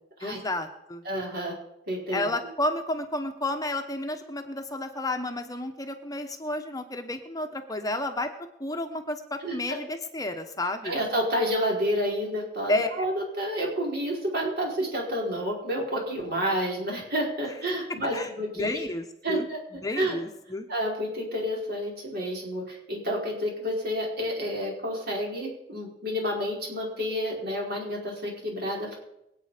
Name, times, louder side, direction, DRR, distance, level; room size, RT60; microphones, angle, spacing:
voice 1, 0.2-1.0 2.1-8.3 8.6-10.9 12.7-13.1 18.1-19.4 19.8-20.7, left 1 dB, 20° left, 6 dB, 1.0 m, -31 dB
voice 2, 1.1-1.5 1.9-2.3 9.4-9.8 10.8-18.8 19.2-19.6 19.9-20.2 20.7-29.0, equal, 60° right, -2 dB, 5.1 m, -29 dB
24.5 x 8.5 x 5.1 m, 0.83 s
head